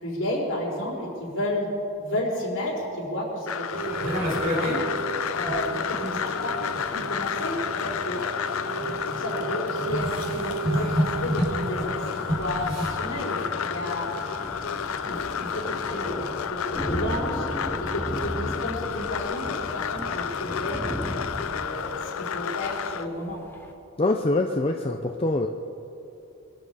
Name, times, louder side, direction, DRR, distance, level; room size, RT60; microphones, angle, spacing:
voice 1, 0.0-1.7 2.0-5.0 5.3-6.6 6.9-8.2 9.1-14.1 15.0-17.5 17.9-20.8 21.5-23.4, left 1 dB, 55° left, -3 dB, 4.0 m, -32 dB
sound 1, 3.5-23.1, left 7 dB, 75° left, 0.6 m, -31 dB
sound 2, 3.7-16.1, right 1 dB, 60° right, 3.8 m, -31 dB
Thunder, 13.8-23.7, equal, 10° left, 1.0 m, -36 dB
voice 2, 24.0-25.5, left 2 dB, 25° left, 3 dB, 0.5 m, -24 dB
23.0 x 12.0 x 5.0 m, 2.9 s
head